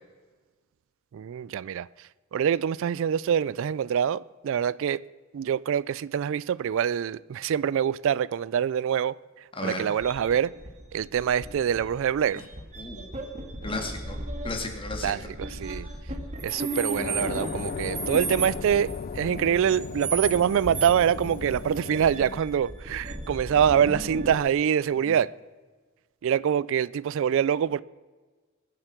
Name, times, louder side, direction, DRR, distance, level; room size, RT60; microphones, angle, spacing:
voice 1, 1.1-1.9 2.3-5.0 5.3-9.2 9.6-10.5 10.9-12.4 15.0-15.9 16.4-25.3 26.2-27.8, right 8 dB, 65° right, 0.3 m, -25 dB
voice 2, 9.6-9.9 12.3-12.4 12.8-13.1 13.6-14.2 14.4-15.3 15.6-15.9 25.1-25.2, left 2 dB, 25° left, 2.2 m, -35 dB
sound 1, 10.0-24.4, right 2 dB, 35° right, 1.9 m, -35 dB
sound 2, 16.9-22.4, left 6 dB, 45° left, 0.3 m, -37 dB
22.0 x 7.7 x 6.0 m
head